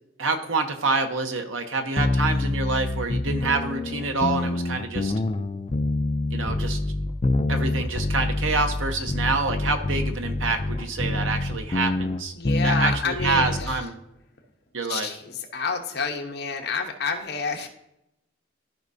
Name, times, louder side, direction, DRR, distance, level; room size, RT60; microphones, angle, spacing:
voice 1, 0.2-5.1 6.3-6.8 7.5-12.3 12.6-14.0 14.7-15.1, right 3 dB, 90° right, 6 dB, 1.0 m, -27 dB
sound 1, 2.0-13.8, left 2 dB, 30° left, 0.4 m, -26 dB
voice 2, 12.4-13.8 14.9-17.7, left 5 dB, 55° left, 3 dB, 1.0 m, -29 dB
13.0 x 5.2 x 2.7 m, 0.85 s
head